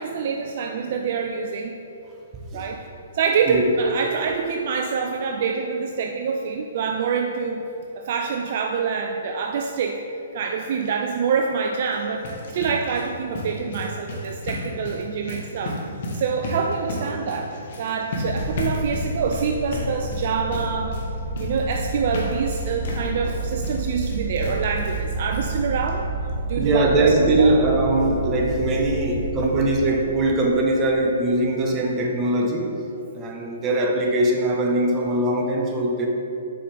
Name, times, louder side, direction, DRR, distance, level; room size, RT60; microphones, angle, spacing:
voice 1, 0.0-1.8 2.5-2.8 3.1-7.6 8.0-10.0 10.3-15.8 16.1-20.9 21.4-26.1 26.5-27.5, right 5 dB, 50° right, 3 dB, 0.4 m, -26 dB
sound 1, 11.8-25.1 25.3-25.4 25.9-26.0 26.3-26.4, left 1 dB, 55° left, 1.3 m, -33 dB
sound 2, 18.2-31.1, right 2 dB, 30° left, 1.4 m, -30 dB
voice 2, 26.6-32.8 33.1-36.1, right 2 dB, 25° right, 1 dB, 0.9 m, -21 dB
7.6 x 5.0 x 3.4 m, 2.8 s
figure-of-eight pair, 125°, 0 cm